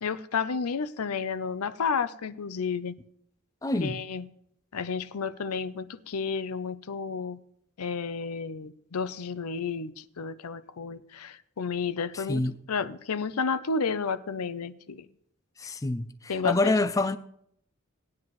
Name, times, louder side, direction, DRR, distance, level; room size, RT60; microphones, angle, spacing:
voice 1, 0.0-2.9 3.7-4.3 4.7-7.4 7.8-15.1 16.3-16.7, left 5 dB, 90° left, 0.6 m, -31 dB
voice 2, 3.6-4.0 12.1-12.5 15.6-17.2, left 2 dB, 15° left, 0.4 m, -27 dB
18.0 x 9.7 x 3.1 m
head